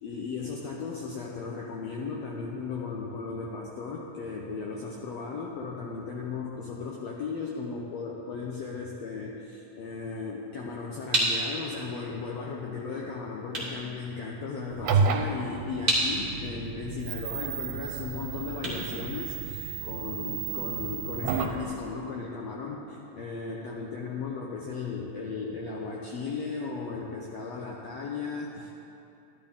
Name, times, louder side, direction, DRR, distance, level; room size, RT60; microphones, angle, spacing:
voice 1, 0.0-28.7, left 4 dB, 75° left, -2 dB, 1.5 m, -36 dB
sound 1, 10.5-19.9, right 1 dB, 20° right, 2.2 m, -33 dB
sound 2, 14.7-21.6, right 5 dB, 85° right, 2.3 m, -31 dB
12.5 x 12.5 x 3.6 m, 2.8 s
omnidirectional pair, 3.8 m